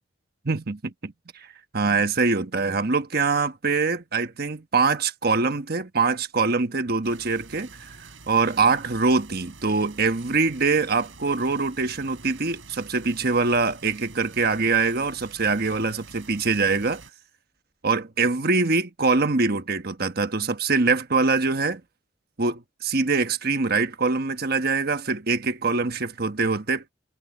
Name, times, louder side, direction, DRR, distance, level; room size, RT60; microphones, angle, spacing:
voice 1, 0.4-1.5 1.7-17.0 17.8-21.8 22.4-26.9, right 4 dB, 55° right, 1.3 m, -24 dB
sound 1, 7.0-17.1, right 4 dB, 85° right, 7.0 m, -47 dB
head